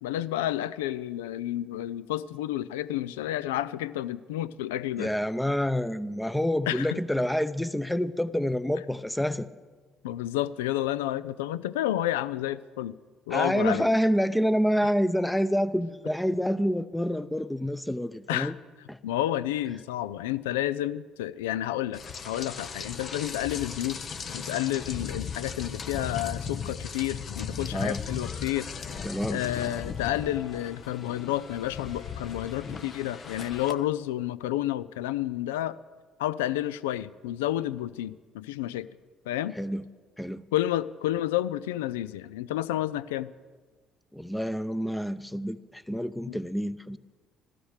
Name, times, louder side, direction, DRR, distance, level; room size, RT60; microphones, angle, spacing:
voice 1, 0.0-5.1 6.7-7.0 10.0-13.0 13.3-13.9 18.3-18.5 19.0-24.0 24.3-28.7 29.3-35.8 36.2-38.9 39.3-39.6 40.5-43.3 46.3-46.4, left 13 dB, 90° left, 17 dB, 0.3 m, -30 dB
voice 2, 5.0-9.5 13.3-18.5 18.9-19.0 27.7-28.0 29.0-29.4 39.6-39.8 40.2-40.4 44.1-47.0, equal, 5° left, 14 dB, 0.7 m, -27 dB
Rain, 21.9-33.7, left 6 dB, 50° left, 1.0 m, -37 dB
16.0 x 13.0 x 6.5 m, 1.4 s
hypercardioid pair, 60°, 0 cm